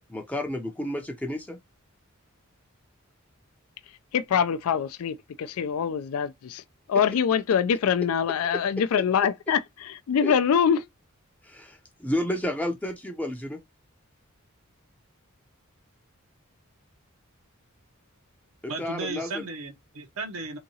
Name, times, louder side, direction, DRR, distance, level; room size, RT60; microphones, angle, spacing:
voice 1, 0.1-1.6 8.5-8.6 10.2-10.3 11.4-13.6 18.6-19.4, left 1 dB, 5° left, 0.5 m, -31 dB
voice 2, 4.1-6.6 6.9-10.8, left 7 dB, 80° left, 0.3 m, -24 dB
voice 3, 18.7-20.6, right 3 dB, 80° right, 0.7 m, -35 dB
3.6 x 2.9 x 2.7 m
head